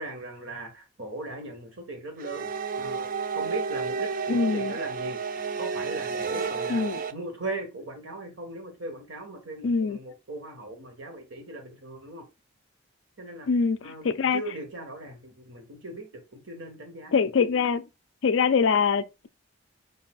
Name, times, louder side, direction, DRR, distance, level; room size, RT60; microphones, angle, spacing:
voice 1, 0.0-2.5 2.7-6.8 7.1-12.2 13.2-13.5 13.8-17.3, right 2 dB, 80° right, 1.6 m, -39 dB
sound 1, 2.2-7.1, right 5 dB, 45° right, 0.4 m, -31 dB
voice 2, 4.3-4.7 6.7-7.0 9.6-10.0 13.5-14.4 17.1-17.8 18.2-19.3, left 5 dB, 75° left, 0.4 m, -24 dB
5.2 x 4.1 x 2.4 m
head